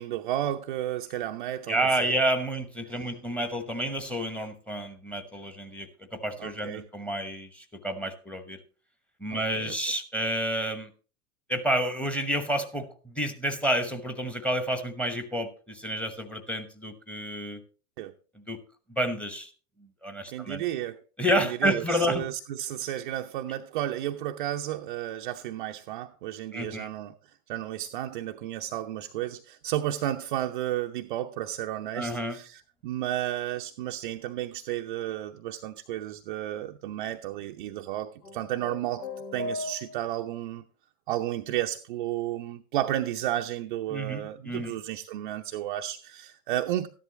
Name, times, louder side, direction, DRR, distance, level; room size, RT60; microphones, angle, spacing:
voice 1, 0.0-2.2 6.4-6.9 9.3-9.8 18.0-18.1 20.3-21.0 21.4-40.6 41.1-46.9, right 13 dB, 35° right, 0.5 m, -33 dB
voice 2, 1.7-8.6 9.2-10.9 11.5-17.6 18.3-18.6 18.9-19.5 19.8-20.6 21.2-22.3 26.5-26.9 31.9-32.4 43.9-44.7, equal, 5° left, 1.0 m, -30 dB
sound 1, 38.2-40.3, left 3 dB, 80° left, 1.4 m, -37 dB
13.5 x 11.0 x 2.9 m
figure-of-eight pair, 100°, 46 cm